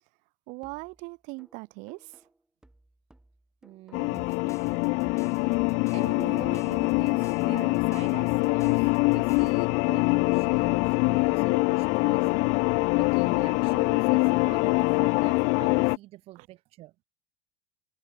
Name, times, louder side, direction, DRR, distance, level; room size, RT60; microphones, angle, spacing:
voice 1, 0.5-2.2 16.3-16.5, right 29 dB, 55° right, 3.3 m, -40 dB
sound 1, 0.6-4.3 4.6-8.3, right 1 dB, 5° right, 5.9 m, -61 dB
voice 2, 3.6-4.4 5.9-12.5 13.0-16.9, right 17 dB, 40° right, 0.9 m, -45 dB
sound 2, 3.9-16.0, left 31 dB, 50° left, 0.4 m, -24 dB
sound 3, 4.1-9.6, left 6 dB, 20° left, 5.4 m, -48 dB
cardioid pair, 165°, 15 cm